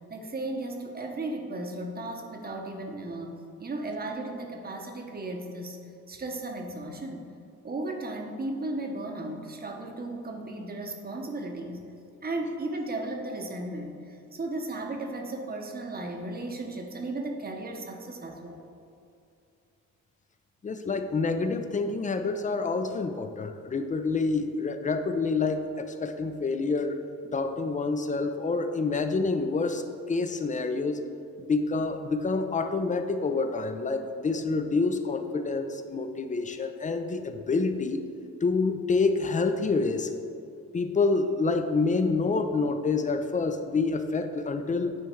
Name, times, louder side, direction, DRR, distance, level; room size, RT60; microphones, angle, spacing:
voice 1, 0.1-5.8 6.1-7.2 7.6-11.9 12.2-18.6, right 2 dB, 30° right, 2 dB, 0.9 m, -35 dB
voice 2, 20.6-27.0 27.2-31.0 31.4-38.0 38.4-40.1 40.7-45.0, left 3 dB, 25° left, 8 dB, 0.5 m, -27 dB
9.1 x 3.6 x 4.5 m, 2.5 s
cardioid pair, 90°, 30 cm